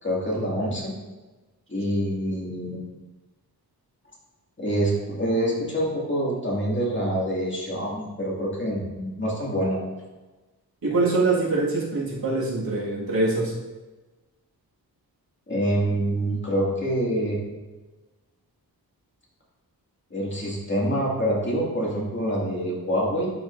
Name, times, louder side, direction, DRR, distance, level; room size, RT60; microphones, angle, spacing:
voice 1, 0.0-0.9 1.7-2.8 4.6-9.8 15.5-17.4 20.1-23.3, equal, 30° left, -5 dB, 2.2 m, -26 dB
voice 2, 10.8-13.5, right 3 dB, 70° right, -5 dB, 2.0 m, -24 dB
12.0 x 5.1 x 2.6 m, 1.2 s
wide cardioid pair, 135°, 38 cm